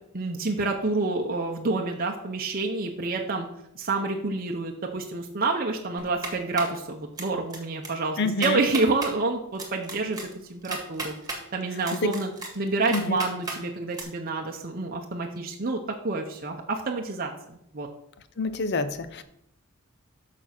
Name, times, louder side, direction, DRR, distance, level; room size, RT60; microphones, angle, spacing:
voice 1, 0.1-3.5 3.8-10.2 10.5-11.1 11.5-12.3 12.6-17.9, right 3 dB, 45° right, 2 dB, 0.8 m, -28 dB
sound 1, 6.0-6.8 7.2-7.6 7.8-7.9 8.3-9.1 9.6-11.4 11.8-13.6 13.9-14.0, right 3 dB, 15° right, 1.8 m, -34 dB
voice 2, 8.2-8.6 11.9-12.1 12.9-13.2 18.4-19.2, left 3 dB, 50° left, 12 dB, 0.7 m, -27 dB
7.0 x 6.2 x 5.9 m, 0.78 s
head